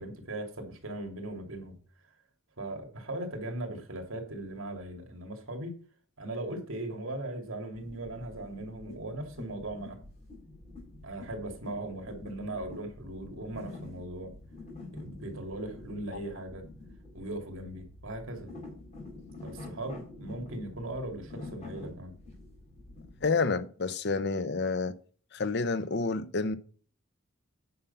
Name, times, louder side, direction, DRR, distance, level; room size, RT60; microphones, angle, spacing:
voice 1, 0.0-1.8 2.6-5.8 6.2-10.0 11.0-14.3 14.9-16.6 17.1-18.6 19.4-22.1, right 1 dB, 80° right, 2.6 m, -39 dB
sound 1, 7.7-23.3, left 2 dB, 35° left, 4.3 m, -47 dB
voice 2, 23.2-24.9 25.3-26.6, left 4 dB, 55° left, 0.8 m, -29 dB
9.6 x 5.6 x 5.5 m
head